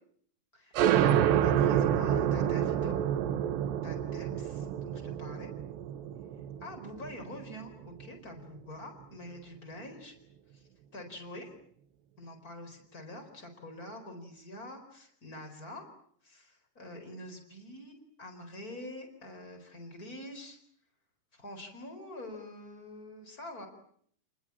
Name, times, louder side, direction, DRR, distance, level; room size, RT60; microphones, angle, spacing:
voice 1, 0.5-3.0 3.8-5.5 6.6-10.2 10.5-10.6 10.9-11.6 12.2-15.9 16.2-20.6 21.3-23.7, left 1 dB, 20° left, 4 dB, 4.4 m, -46 dB
sound 1, 0.8-8.0, right 10 dB, 75° right, 3.3 m, -28 dB
29.5 x 20.5 x 8.6 m, 0.65 s
omnidirectional pair, 5.3 m